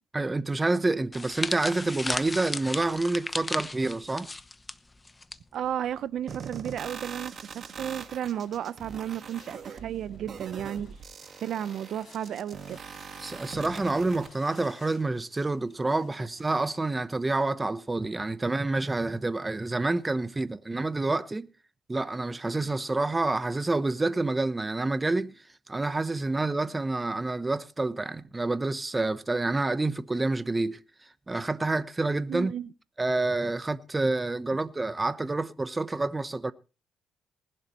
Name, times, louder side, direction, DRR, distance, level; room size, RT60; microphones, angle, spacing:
voice 1, 0.1-4.3 13.2-21.5 21.9-25.3 25.7-30.8 31.3-32.5 33.0-36.5, right 2 dB, 20° right, 0.8 m, -28 dB
sound 1, 1.1-5.4 5.6-5.9 6.8-7.0, left 2 dB, 20° left, 0.9 m, -35 dB
voice 2, 5.5-10.9 11.4-12.8 32.3-32.7, right 10 dB, 70° right, 0.7 m, -33 dB
sound 2, 6.3-14.3, right 6 dB, 50° right, 1.6 m, -42 dB
sound 3, 8.2-16.9, left 5 dB, 50° left, 7.3 m, -56 dB
20.0 x 11.5 x 3.0 m
cardioid pair, 90°, 0 cm